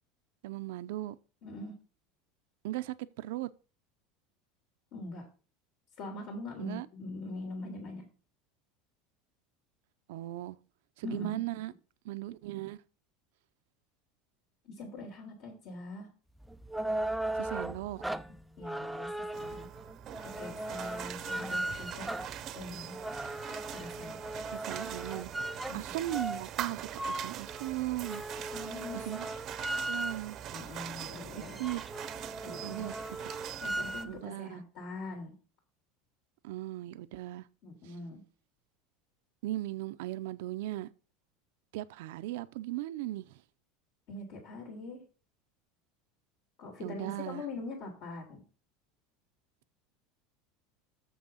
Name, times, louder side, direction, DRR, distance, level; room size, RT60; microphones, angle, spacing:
voice 1, 0.4-1.2 2.6-3.5 6.6-6.9 10.1-10.6 11.0-11.7 12.0-12.8 17.3-18.0 24.5-25.3 25.7-28.2 28.9-29.3 29.7-30.4 31.3-31.8 32.5-33.2 34.1-34.6 36.4-37.5 37.8-37.9 39.4-40.9 41.7-43.4 46.8-47.4, right 16 dB, 80° right, 0.6 m, -38 dB
voice 2, 1.4-1.7 4.9-5.3 6.0-8.1 11.0-11.5 14.6-16.1 18.6-19.7 20.2-22.1 22.5-23.0 23.7-24.2 25.7-25.8 28.3-29.1 30.5-31.6 32.4-32.9 33.6-35.4 37.6-38.2 44.1-45.0 46.6-48.4, left 2 dB, 55° left, 3.3 m, -43 dB
sound 1, 16.4-30.5 30.9-31.0 31.3-34.2, right 1 dB, 5° right, 0.4 m, -38 dB
sound 2, 19.3-34.0, right 11 dB, 40° right, 0.7 m, -43 dB
7.0 x 6.2 x 5.7 m
supercardioid pair, 135°, 0 cm